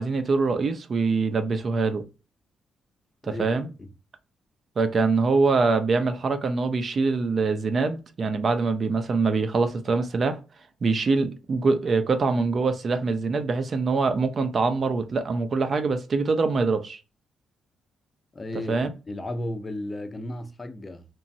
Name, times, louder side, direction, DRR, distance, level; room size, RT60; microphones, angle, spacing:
voice 1, 0.0-2.0 3.3-3.7 4.8-10.4 10.8-17.0 18.7-18.9, right 4 dB, 45° right, 0.5 m, -24 dB
voice 2, 3.2-3.9 18.3-21.0, left 1 dB, 25° left, 0.5 m, -34 dB
2.9 x 2.3 x 2.6 m
cardioid pair, 90°, 0 cm